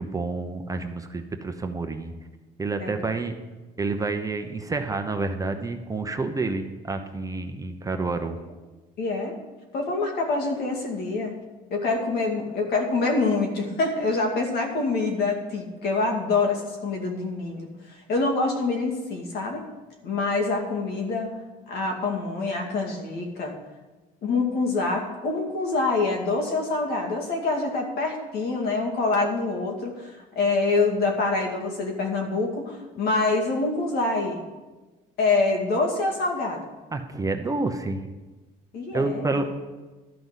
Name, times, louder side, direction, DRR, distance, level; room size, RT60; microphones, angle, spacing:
voice 1, 0.0-2.1 2.6-3.4 3.8-8.4 36.9-38.1 38.9-39.6, right 3 dB, 20° right, 6 dB, 0.9 m, -29 dB
voice 2, 2.8-3.1 9.0-9.3 9.7-11.3 11.7-19.7 20.0-21.4 21.7-23.6 24.2-34.4 35.2-36.7 38.7-39.3, left 3 dB, 70° left, 2 dB, 2.3 m, -26 dB
12.0 x 5.4 x 8.1 m, 1.2 s
cardioid pair, 110°, 17 cm